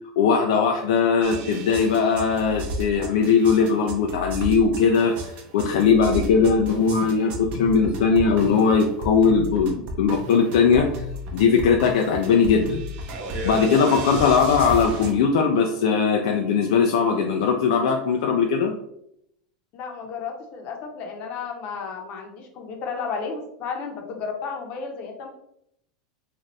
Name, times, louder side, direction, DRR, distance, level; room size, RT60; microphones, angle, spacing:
voice 1, 0.2-10.9 11.3-12.8 13.4-18.7, left 5 dB, 75° left, 2 dB, 0.3 m, -20 dB
sound 1, 1.2-15.1, equal, 50° right, 0.6 m, -33 dB
voice 2, 19.7-25.3, left 5 dB, 50° left, 2 dB, 0.8 m, -33 dB
2.6 x 2.4 x 3.1 m, 0.75 s
hypercardioid pair, 105°, 3 cm